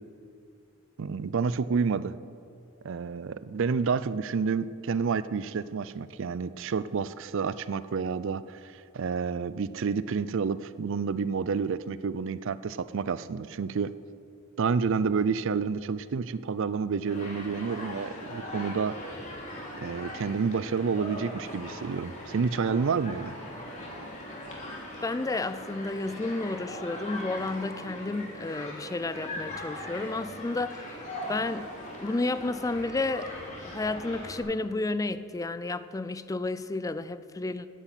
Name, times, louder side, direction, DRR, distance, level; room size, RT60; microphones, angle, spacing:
voice 1, 1.0-2.1 2.8-8.6 8.9-13.9 14.6-19.0 19.8-23.3, right 5 dB, 65° right, 16 dB, 0.4 m, -29 dB
Human group actions, 17.1-34.4, left 1 dB, 35° left, 2.9 m, -40 dB
voice 2, 25.0-31.0 31.3-31.7 32.0-33.3 33.6-37.7, left 2 dB, 15° left, 13 dB, 0.4 m, -31 dB
10.0 x 9.7 x 8.2 m, 2.5 s
head